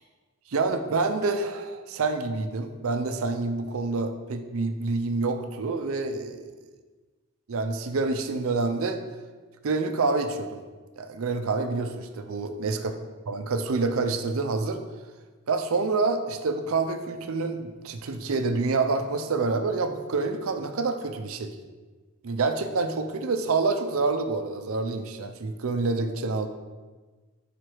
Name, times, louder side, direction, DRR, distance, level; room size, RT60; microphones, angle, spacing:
voice 1, 0.5-6.5 7.5-9.0 9.6-10.6 11.0-12.9 13.3-14.8 15.5-21.6 22.2-26.5, right 3 dB, 70° right, 7 dB, 0.5 m, -27 dB
5.0 x 4.8 x 4.5 m, 1.3 s
head